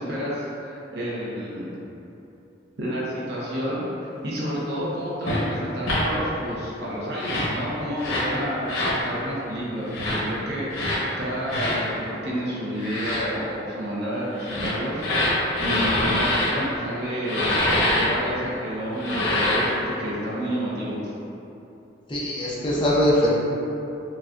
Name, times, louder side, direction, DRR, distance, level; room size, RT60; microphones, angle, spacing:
voice 1, 0.0-1.8 2.8-15.3 15.6-21.1, equal, 55° right, -7 dB, 0.7 m, -30 dB
sound 1, 5.2-5.4 5.8-6.0 7.1-7.5 8.0-8.3 8.6-9.0 9.9-10.2 10.7-11.0 11.5-11.8 12.8-13.2 14.3-16.5 17.2-18.0 18.9-19.7, left 1 dB, 85° left, 0.9 m, -24 dB
voice 2, 22.1-23.3, left 1 dB, 25° left, -7 dB, 0.7 m, -21 dB
5.9 x 2.3 x 2.6 m, 2.9 s
head